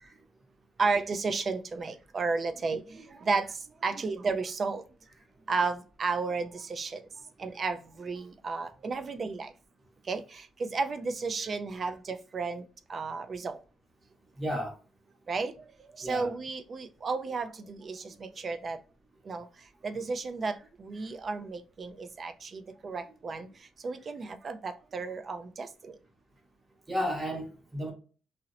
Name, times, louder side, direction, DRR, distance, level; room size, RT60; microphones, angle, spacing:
voice 1, 0.8-4.8 5.5-9.5 10.0-13.6 15.3-18.8 19.2-26.0, right 4 dB, 45° right, 0.4 m, -33 dB
voice 2, 14.4-14.8 16.0-16.3 26.9-27.9, equal, 20° right, 0.9 m, -32 dB
2.8 x 2.0 x 2.4 m
cardioid pair, 90°, 0 cm